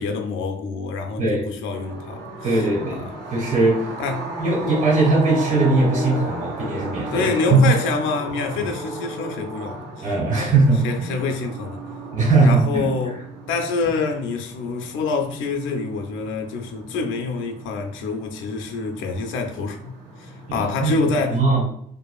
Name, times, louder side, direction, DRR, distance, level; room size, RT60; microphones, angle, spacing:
voice 1, 0.0-2.3 3.1-3.2 4.0-4.3 7.1-10.0 10.3-10.5 10.8-11.8 12.4-13.2 13.5-19.9 20.2-21.4, left 4 dB, 80° left, 0.4 m, -26 dB
voice 2, 1.2-1.5 2.4-3.9 4.4-7.7 8.5-8.7 10.0-11.1 12.1-13.1 20.5-21.6, right 3 dB, 40° right, 1.4 m, -20 dB
sound 1, 1.7-20.5, right 1 dB, 60° right, 1.3 m, -34 dB
2.5 x 2.4 x 2.3 m
cardioid pair, 90°, 20 cm